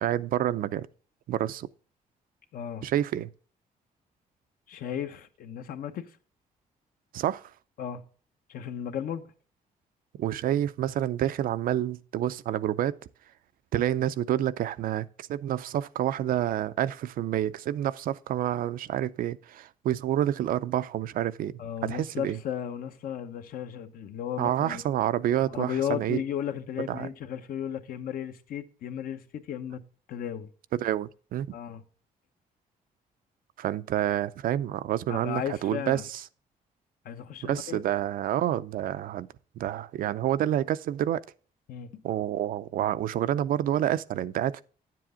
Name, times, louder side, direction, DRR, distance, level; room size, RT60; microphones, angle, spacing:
voice 1, 0.0-0.9 1.3-1.7 2.8-3.3 7.1-7.4 10.2-12.9 13.7-22.4 24.4-26.2 26.9-27.1 30.8-31.5 33.6-36.2 37.4-39.3 39.6-41.2 42.0-44.6, right 12 dB, 70° right, 0.5 m, -28 dB
voice 2, 2.5-2.9 4.7-6.2 7.8-8.0 8.5-9.3 21.6-24.8 25.5-29.8 30.1-30.5 31.5-31.8 35.1-36.1 37.0-37.8 41.7-41.9, left 9 dB, 70° left, 1.0 m, -35 dB
9.7 x 7.6 x 3.7 m
cardioid pair, 140°, 15 cm